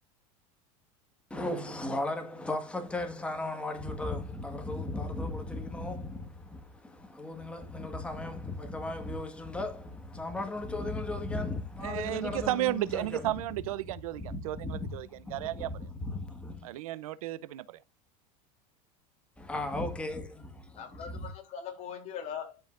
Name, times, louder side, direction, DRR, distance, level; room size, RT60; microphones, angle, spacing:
voice 1, 1.3-13.3 14.3-16.7 19.4-21.3, left 2 dB, 5° left, 1.6 m, -36 dB
voice 2, 11.8-15.9 16.6-17.8, right 15 dB, 90° right, 0.7 m, -33 dB
voice 3, 20.7-22.6, left 7 dB, 40° left, 3.1 m, -41 dB
12.5 x 5.5 x 2.5 m
supercardioid pair, 135°, 18 cm